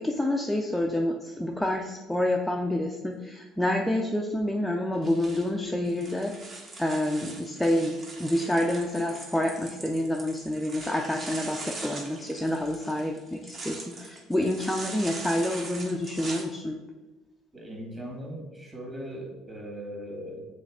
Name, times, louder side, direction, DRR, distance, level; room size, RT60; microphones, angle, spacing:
voice 1, 0.0-6.3 6.8-16.8, left 1 dB, 5° left, 1 dB, 0.4 m, -28 dB
sound 1, 4.9-16.4, right 2 dB, 35° right, 1.3 m, -42 dB
voice 2, 17.5-20.5, equal, 20° right, -1 dB, 1.9 m, -39 dB
6.3 x 3.2 x 4.9 m, 1.2 s
cardioid pair, 120°, 0 cm